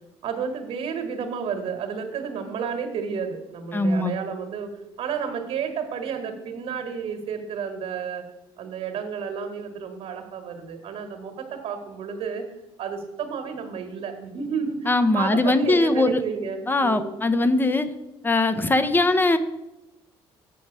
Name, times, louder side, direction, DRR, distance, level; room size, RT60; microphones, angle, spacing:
voice 1, 0.2-4.7 5.0-8.2 8.6-12.4 12.8-17.2, right 6 dB, 70° right, 5 dB, 1.4 m, -31 dB
voice 2, 3.7-4.1 14.9-16.2 16.7-17.9 18.2-19.4, left 2 dB, 20° left, 12 dB, 0.7 m, -21 dB
7.7 x 6.1 x 5.4 m, 0.95 s
cardioid pair, 90°, 11 cm